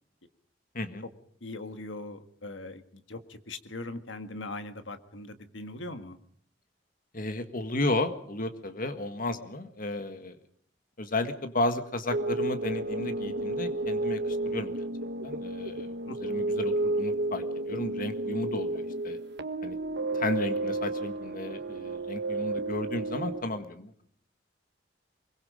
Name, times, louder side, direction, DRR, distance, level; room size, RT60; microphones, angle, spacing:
voice 1, 1.4-6.2 16.1-16.5, left 2 dB, 75° left, 9 dB, 1.8 m, -41 dB
voice 2, 7.1-10.4 11.0-14.8 15.2-15.9 16.2-19.2 19.6-19.8 20.1-24.0, left 2 dB, 50° left, 9 dB, 1.7 m, -33 dB
sound 1, 12.1-23.4, right 2 dB, 60° right, 1.2 m, -32 dB
24.5 x 22.5 x 5.1 m, 0.63 s
head